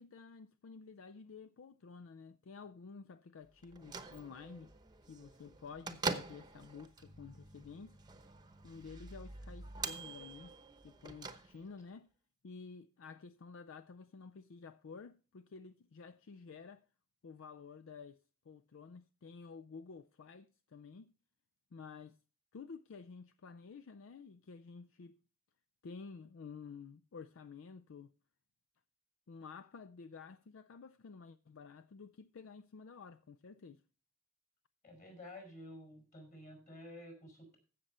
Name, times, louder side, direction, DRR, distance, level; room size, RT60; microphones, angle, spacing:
voice 1, 0.0-4.7 5.1-8.0 8.6-10.5 10.8-12.1 12.4-16.8 17.2-18.2 18.5-21.1 21.7-22.2 22.5-25.2 25.8-28.1 29.3-33.8, left 5 dB, 65° left, 0.4 m, -51 dB
Bell / Microwave oven, 3.6-11.9, right 4 dB, 20° right, 0.9 m, -45 dB
voice 2, 34.8-37.6, left 1 dB, 35° left, 5.1 m, -51 dB
15.5 x 6.6 x 4.3 m
head